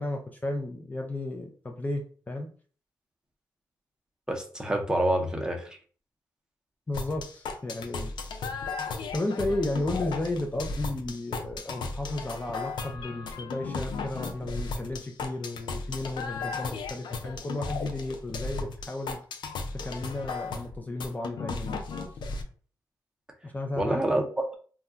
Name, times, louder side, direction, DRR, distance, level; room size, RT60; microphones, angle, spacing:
voice 1, 0.0-2.5 6.9-8.1 9.1-19.2 19.7-21.8 23.4-24.0, left 2 dB, 20° left, 2 dB, 0.4 m, -33 dB
voice 2, 4.3-5.7 23.8-24.6, right 1 dB, 10° right, 1 dB, 0.7 m, -27 dB
sound 1, 6.9-22.4, left 4 dB, 85° left, 0.4 m, -35 dB
2.3 x 2.2 x 3.7 m, 0.42 s
cardioid pair, 85°, 8 cm